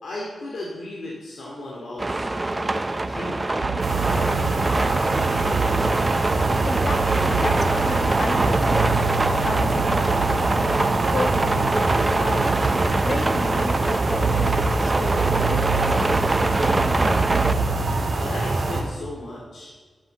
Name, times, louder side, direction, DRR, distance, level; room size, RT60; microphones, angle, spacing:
voice 1, 0.0-5.7 18.1-19.7, left 1 dB, 85° left, -4 dB, 2.5 m, -37 dB
sound 1, 2.0-17.5, right 2 dB, 20° right, 0.5 m, -24 dB
sound 2, 3.6-18.1, right 6 dB, 85° right, 0.6 m, -29 dB
sound 3, 3.8-18.8, right 2 dB, 50° right, 1.9 m, -25 dB
voice 2, 6.6-8.9 9.3-10.2 10.7-17.2, left 3 dB, 45° left, 11 dB, 0.7 m, -33 dB
11.0 x 7.5 x 7.1 m, 1.4 s
wide cardioid pair, 155°, 0 cm